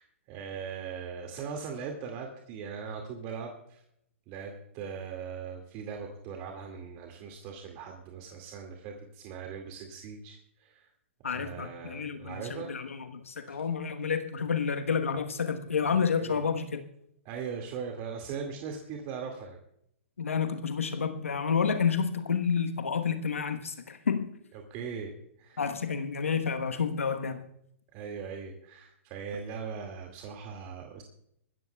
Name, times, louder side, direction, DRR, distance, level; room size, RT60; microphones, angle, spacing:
voice 1, 0.0-3.8 4.3-10.9 11.2-12.7 13.5-13.6 16.2-16.4 17.3-19.6 24.5-25.6 27.9-31.0, right 6 dB, 35° right, 2.1 m, -40 dB
voice 2, 11.2-16.8 20.2-24.3 25.6-27.5, left 6 dB, 85° left, 1.2 m, -30 dB
26.0 x 14.0 x 2.3 m
hypercardioid pair, 125°, 7 cm